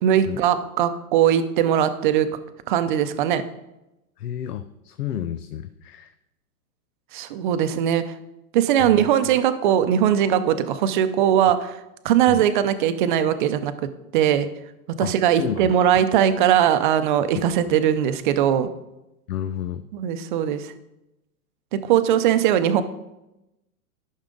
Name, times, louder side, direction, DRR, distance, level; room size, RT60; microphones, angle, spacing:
voice 1, 0.0-2.3 2.7-3.4 7.1-8.0 8.5-11.8 12.0-13.7 14.1-14.5 15.0-18.7 19.9-20.7 21.7-22.8, right 10 dB, 35° right, 10 dB, 0.6 m, -20 dB
voice 2, 4.2-6.1 8.8-9.1 12.3-12.5 15.0-16.0 19.3-19.9, left 10 dB, 85° left, 11 dB, 0.7 m, -31 dB
12.5 x 6.3 x 3.8 m, 0.92 s
hypercardioid pair, 155°, 45 cm